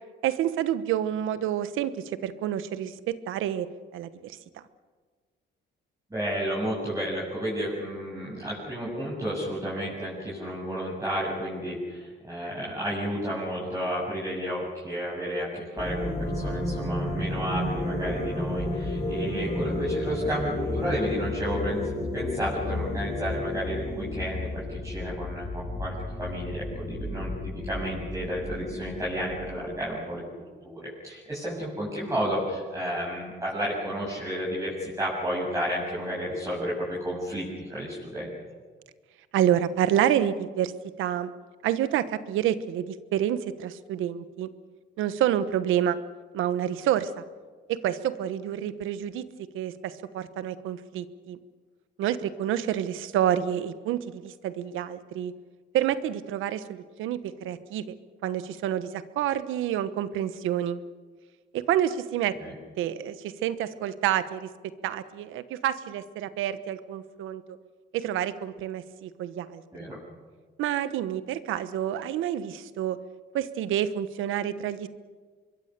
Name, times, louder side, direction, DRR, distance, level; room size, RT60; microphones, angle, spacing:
voice 1, 0.2-1.9 2.2-3.7 3.9-4.4 39.3-40.7 41.0-41.3 41.6-44.5 45.0-46.0 46.3-47.2 47.7-49.2 49.5-51.4 52.0-55.3 55.7-57.9 58.2-60.8 61.5-62.3 62.8-64.5 64.8-67.4 67.9-69.6 70.6-73.0 73.3-74.9, right 11 dB, 90° right, 13 dB, 1.2 m, -28 dB
voice 2, 6.1-21.8 22.1-25.9 26.2-27.3 27.6-30.2 30.6-38.3 62.4-62.5 69.7-70.0, equal, 15° right, -6 dB, 7.7 m, -32 dB
sound 1, 15.8-29.7, left 1 dB, 30° left, 6.1 m, -32 dB
25.5 x 22.5 x 6.8 m, 1.5 s
cardioid pair, 90°, 20 cm